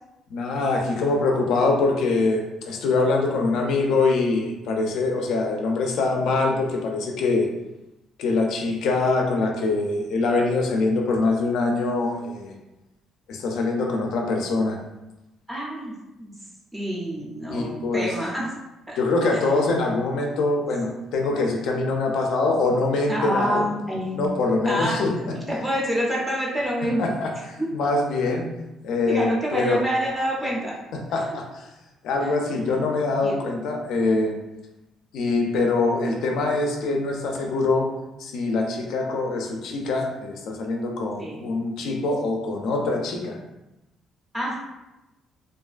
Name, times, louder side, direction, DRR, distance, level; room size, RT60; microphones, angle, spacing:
voice 1, 0.3-7.5 8.2-12.5 13.3-14.8 17.5-18.1 19.0-23.7 24.1-25.3 27.0-27.3 27.7-28.5 28.8-29.8 30.9-31.7 32.0-34.4 35.1-37.9 38.2-43.4, left 3 dB, 70° left, 1 dB, 0.4 m, -24 dB
voice 2, 15.5-16.3 16.7-18.5 18.9-19.6 23.1-24.2 24.6-27.2 27.6-27.7 29.1-30.7 31.3-31.4 32.2-32.8 33.2-33.4 41.2-41.5 44.3-44.6, equal, 10° right, -3 dB, 0.5 m, -28 dB
2.4 x 2.3 x 2.3 m, 0.97 s
cardioid pair, 150°, 0 cm